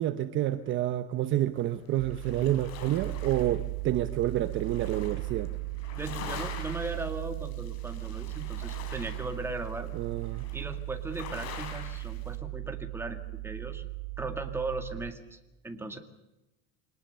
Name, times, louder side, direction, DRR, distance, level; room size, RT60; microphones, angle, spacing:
voice 1, 0.0-5.5 9.9-10.4, right 13 dB, 40° right, 10 dB, 1.0 m, -29 dB
sound 1, 1.6-12.4, left 7 dB, 50° left, 4.0 m, -46 dB
sound 2, 2.0-15.1, right 20 dB, 85° right, 2.7 m, -37 dB
voice 2, 6.0-10.0 10.5-13.2 13.4-13.8 14.2-15.4 15.6-16.0, right 2 dB, 5° right, 5 dB, 2.0 m, -37 dB
25.0 x 19.5 x 6.9 m, 0.98 s
cardioid pair, 160°, 32 cm